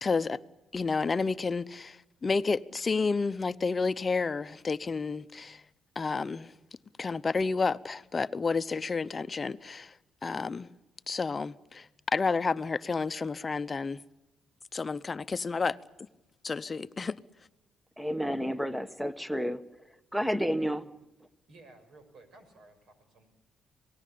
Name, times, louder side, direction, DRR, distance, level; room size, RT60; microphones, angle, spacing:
voice 1, 0.0-0.4 0.7-5.6 6.0-6.5 7.0-9.9 10.2-10.7 11.1-14.0 14.7-15.8 16.4-17.2, left 4 dB, 30° left, 0.8 m, -30 dB
voice 2, 18.0-19.6 20.1-20.8, equal, 5° right, 1.1 m, -30 dB
voice 3, 20.6-20.9 21.5-23.3, right 2 dB, 65° right, 6.2 m, -56 dB
27.0 x 19.0 x 8.6 m
cardioid pair, 90°, 0 cm